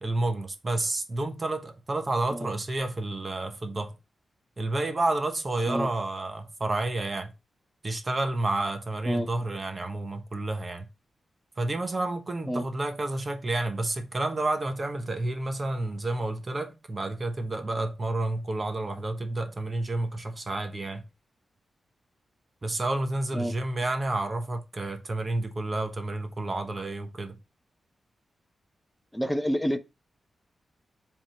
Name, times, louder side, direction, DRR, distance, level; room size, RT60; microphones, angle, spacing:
voice 1, 0.0-4.0 4.6-7.3 7.8-10.9 11.6-21.0 22.6-27.4, right 2 dB, 30° right, 1.1 m, -30 dB
voice 2, 29.1-29.8, equal, 5° left, 0.7 m, -28 dB
5.3 x 3.7 x 5.6 m
wide cardioid pair, 125°, 0 cm